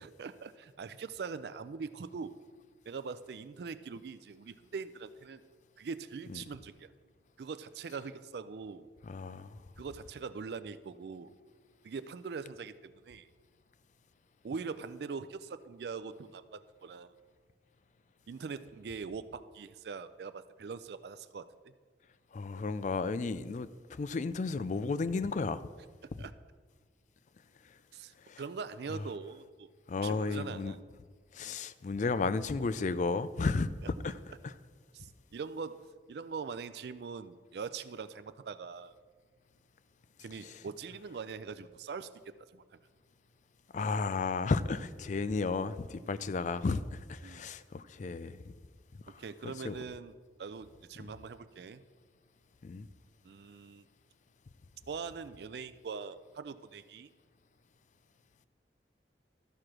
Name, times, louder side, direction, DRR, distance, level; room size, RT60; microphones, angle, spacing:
voice 1, 0.0-2.3 2.9-5.4 5.8-6.9 7.4-8.9 9.8-11.3 11.8-13.3 14.4-17.1 18.3-21.7 26.2-26.3 27.9-29.7 30.0-30.8 31.4-31.6 34.9-38.9 40.2-42.1 42.5-42.6 47.2-47.5 49.1-50.1 50.4-51.8 53.2-53.8 54.9-57.1, right 5 dB, 65° right, 0.4 m, -42 dB
voice 2, 9.0-9.6 22.3-25.6 28.3-28.4 29.9-30.7 31.3-33.7 34.0-34.2 34.4-34.5 40.4-40.5 43.7-48.5 49.1-49.2 49.6-49.8 51.0-51.1 52.6-52.9, left 4 dB, 45° left, 0.4 m, -33 dB
13.0 x 4.9 x 5.9 m
head